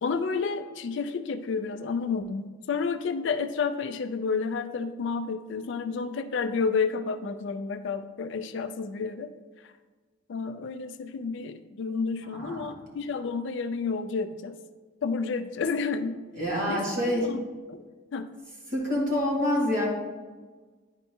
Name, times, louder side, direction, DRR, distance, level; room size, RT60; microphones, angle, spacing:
voice 1, 0.0-9.3 9.6-9.7 10.3-14.6 15.0-16.2 16.7-17.4 17.7-17.8 18.1-18.3, left 5 dB, 60° left, 9 dB, 0.4 m, -30 dB
voice 2, 12.3-12.6 16.4-17.2 18.7-19.9, left 1 dB, 40° right, -4 dB, 1.9 m, -26 dB
10.5 x 4.4 x 2.8 m, 1.4 s
head